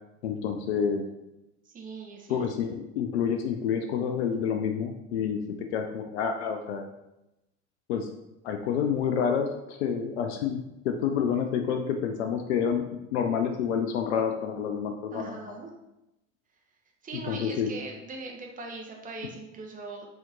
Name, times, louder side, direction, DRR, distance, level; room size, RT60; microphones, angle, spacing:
voice 1, 0.2-1.0 2.3-5.4 5.7-6.9 7.9-8.1 8.4-15.4 17.3-17.7, left 7 dB, 60° left, 5 dB, 0.5 m, -28 dB
voice 2, 1.7-2.4 15.1-15.7 17.0-20.1, right 3 dB, 20° right, 1 dB, 0.8 m, -40 dB
4.1 x 2.9 x 3.8 m, 0.91 s
figure-of-eight pair, 70°, 38 cm